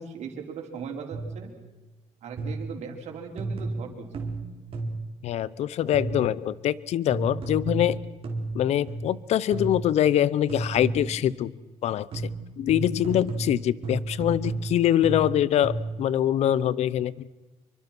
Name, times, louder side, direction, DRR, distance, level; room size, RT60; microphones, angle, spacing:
voice 1, 0.0-1.5 2.2-4.1 13.2-13.3, right 6 dB, 65° right, 2 dB, 5.1 m, -38 dB
sound 1, 1.1-1.5 2.4-2.8 3.4-5.2 5.9-6.4 7.1-9.2 9.5-10.0 10.5-11.3 12.1-16.1, right 2 dB, 50° right, 4.1 m, -33 dB
voice 2, 5.2-8.0 8.5-11.5 11.8-12.1 12.6-17.3, left 11 dB, 65° left, 21 dB, 0.8 m, -24 dB
27.5 x 24.5 x 6.2 m, 1.2 s
cardioid pair, 125°, 12 cm